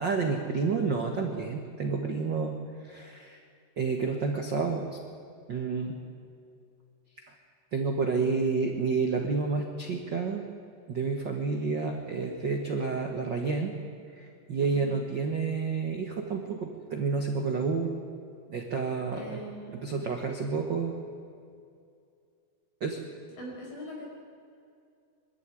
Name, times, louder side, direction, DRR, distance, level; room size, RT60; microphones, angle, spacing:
voice 1, 0.0-2.6 2.8-3.4 3.8-5.0 5.5-6.0 7.7-10.4 10.9-13.7 14.2-17.9 18.5-19.4 19.8-21.0 22.8-23.0, right 4 dB, 90° right, 3 dB, 1.0 m, -30 dB
voice 2, 14.7-15.0 19.1-19.7 23.4-24.1, equal, 65° left, -2 dB, 7.2 m, -41 dB
23.5 x 13.0 x 9.8 m, 2.4 s
omnidirectional pair, 4.4 m